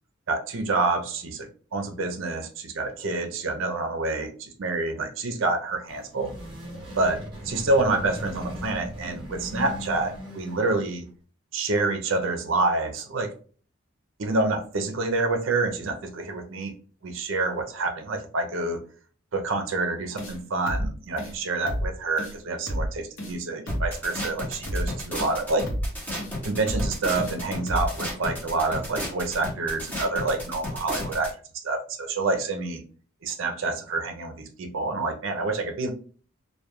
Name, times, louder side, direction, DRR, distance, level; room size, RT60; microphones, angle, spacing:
voice 1, 0.3-6.3 7.0-7.2 7.4-11.0 11.5-13.3 14.2-16.7 17.0-18.8 19.3-25.6 26.4-31.3 31.6-32.8 33.2-35.9, right 3 dB, 65° right, 5 dB, 0.5 m, -27 dB
sound 1, 5.7-11.0, equal, 25° right, 0.9 m, -38 dB
sound 2, 20.2-20.4 20.7-20.9 21.2-21.3 21.7-21.9 22.2-22.3 22.7-22.9 23.2-23.3 23.7-23.9 24.2-24.3 24.7-24.9 25.2-25.3 25.7-25.9 26.2-26.3 26.7-26.9 27.2-27.3 27.7-27.9, equal, 65° left, 0.8 m, -29 dB
sound 3, 23.7-31.3, left 1 dB, 10° left, 0.6 m, -33 dB
2.2 x 2.2 x 2.9 m, 0.42 s
head